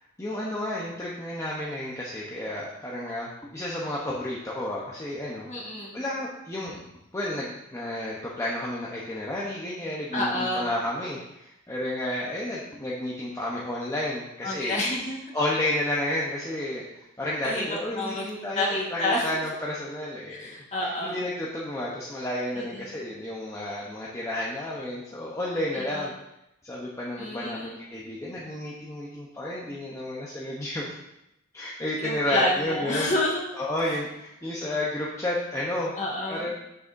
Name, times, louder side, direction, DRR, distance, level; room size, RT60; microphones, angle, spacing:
voice 1, 0.2-5.5 5.9-6.9 7.1-14.8 15.3-20.5 20.8-26.1 26.6-30.9 31.5-33.1 33.6-35.9 36.3-36.5, left 1 dB, 15° left, -5 dB, 0.8 m, -31 dB
voice 2, 5.5-6.0 10.1-10.7 14.4-15.2 17.4-18.2 18.6-19.3 20.3-21.2 22.6-22.9 25.7-26.1 27.2-27.8 32.0-33.4 36.0-36.5, left 1 dB, 35° left, -4 dB, 1.7 m, -29 dB
7.6 x 6.7 x 2.6 m, 0.86 s
head